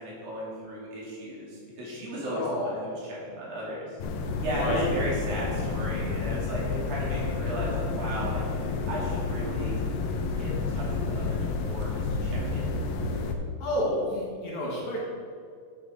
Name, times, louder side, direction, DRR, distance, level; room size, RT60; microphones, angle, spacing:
voice 1, 0.0-4.0 4.4-8.4 8.9-9.8 10.4-12.8, right 1 dB, 70° right, -6 dB, 4.5 m, -35 dB
voice 2, 2.3-2.8 4.5-4.9 13.6-15.0, left 1 dB, 60° left, -4 dB, 2.8 m, -30 dB
sound 1, 4.0-13.3, left 4 dB, 75° left, 2.5 m, -30 dB
11.0 x 8.5 x 3.7 m, 2.2 s
omnidirectional pair, 4.3 m